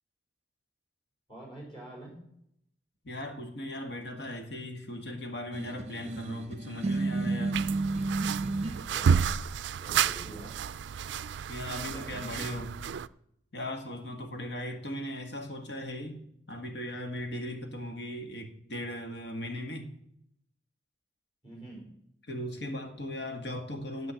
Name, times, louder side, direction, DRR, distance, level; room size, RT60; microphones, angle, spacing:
voice 1, 1.3-2.2 8.8-9.3 9.8-10.6 11.9-12.7 21.4-21.9, right 1 dB, 25° left, 5.1 m, -46 dB
voice 2, 3.0-7.6 11.5-12.8 13.5-16.2 16.5-19.9 22.3-24.1, left 1 dB, 65° left, 1.7 m, -38 dB
sound 1, 5.5-8.8, right 3 dB, 35° right, 0.7 m, -31 dB
sound 2, 7.5-13.1, right 7 dB, 70° right, 0.3 m, -30 dB
8.7 x 7.8 x 7.7 m
head